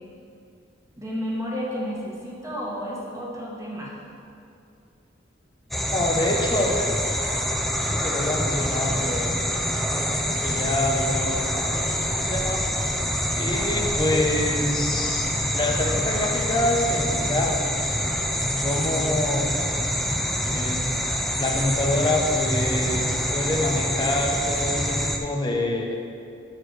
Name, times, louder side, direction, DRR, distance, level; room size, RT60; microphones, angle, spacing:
voice 1, 0.9-4.0, equal, 15° right, -4 dB, 1.3 m, -31 dB
sound 1, 5.7-25.2, equal, ahead, 0.4 m, -26 dB
voice 2, 5.9-6.9 7.9-9.3 10.4-11.3 12.3-12.6 13.3-15.3 15.5-17.5 18.6-19.5 20.5-20.8 21.3-26.0, left 1 dB, 25° left, 1 dB, 0.8 m, -26 dB
6.3 x 4.8 x 6.4 m, 2.7 s
head